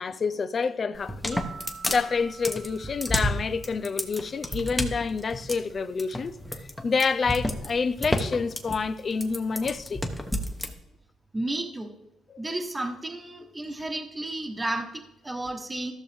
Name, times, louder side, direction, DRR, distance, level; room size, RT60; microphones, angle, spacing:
voice 1, 0.0-1.4 1.9-6.4 6.8-10.0 12.3-12.4, left 5 dB, 40° left, 0.5 m, -28 dB
sound 1, 0.9-10.7, left 1 dB, 10° left, 1.1 m, -30 dB
sound 2, 1.3-4.4, right 5 dB, 45° right, 1.3 m, -47 dB
voice 2, 11.3-11.9 12.4-15.9, right 2 dB, 15° right, 1.2 m, -32 dB
14.5 x 6.3 x 3.5 m
cardioid pair, 90°, 0 cm